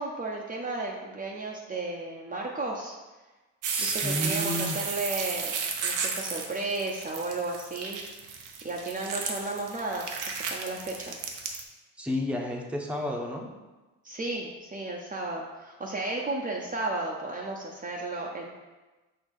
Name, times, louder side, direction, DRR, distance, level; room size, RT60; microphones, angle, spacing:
voice 1, 0.0-3.0 3.8-5.5 5.8-8.0 8.6-11.2 14.0-18.5, right 2 dB, 25° right, -2 dB, 0.7 m, -33 dB
sound 1, 3.6-11.6, right 5 dB, 90° right, 0.8 m, -33 dB
voice 2, 3.7-4.8 12.0-13.5, left 1 dB, 5° right, 0 dB, 1.0 m, -31 dB
6.4 x 2.9 x 5.3 m, 1.2 s
cardioid pair, 90°, 30 cm